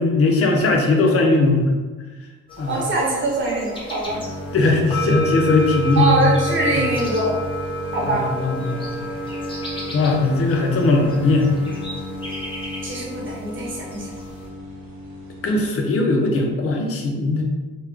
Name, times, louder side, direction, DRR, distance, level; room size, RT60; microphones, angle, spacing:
voice 1, 0.0-1.7 2.6-2.8 4.5-6.2 8.1-9.0 9.9-11.5 15.4-17.4, left 3 dB, 50° left, 2 dB, 0.7 m, -19 dB
sound 1, 2.5-14.5, right 1 dB, 15° left, 1.0 m, -31 dB
voice 2, 2.6-4.2 6.0-7.4 7.9-8.3 12.8-14.1, right 2 dB, 40° right, -3 dB, 1.1 m, -23 dB
sound 2, 4.0-15.7, equal, 70° right, 1.1 m, -33 dB
3.1 x 2.2 x 3.5 m, 1.3 s
cardioid pair, 90°, 30 cm